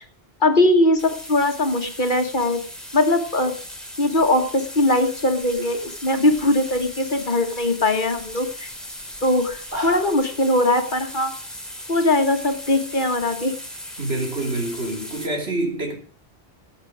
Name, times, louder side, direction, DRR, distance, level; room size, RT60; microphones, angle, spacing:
voice 1, 0.4-2.6 2.9-3.6 4.0-8.7 9.2-11.3 11.9-13.5, left 1 dB, 50° left, 1.8 m, -20 dB
sound 1, 1.0-15.3, equal, ahead, 3.0 m, -38 dB
sound 2, 4.5-4.6 4.9-6.8 7.2-7.6 8.0-8.1 8.3-8.5 8.9-9.0 9.5-10.3, equal, 50° right, 4.3 m, -37 dB
voice 2, 14.0-16.0, right 2 dB, 75° right, 3.4 m, -26 dB
15.5 x 8.4 x 4.8 m
omnidirectional pair, 1.1 m